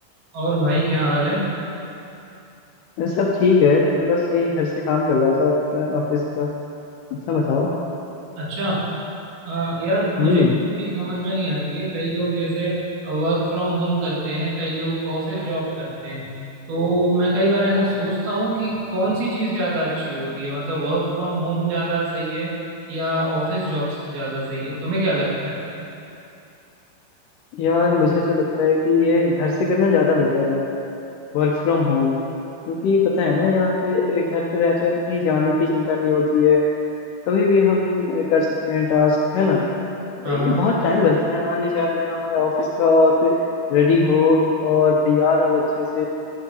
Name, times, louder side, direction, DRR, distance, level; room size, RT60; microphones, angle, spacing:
voice 1, 0.3-1.5 8.4-8.8 9.5-10.5 10.8-16.2 16.7-22.5 22.9-25.7 40.2-40.7, right 1 dB, 80° right, -7 dB, 3.7 m, -24 dB
voice 2, 3.0-6.5 7.3-7.7 10.2-10.5 27.5-30.6 31.3-32.2 32.7-36.6 37.3-39.6 40.2-43.3 43.7-46.1, left 4 dB, 80° left, -2 dB, 1.9 m, -19 dB
14.0 x 8.4 x 2.7 m, 2.8 s
omnidirectional pair, 4.3 m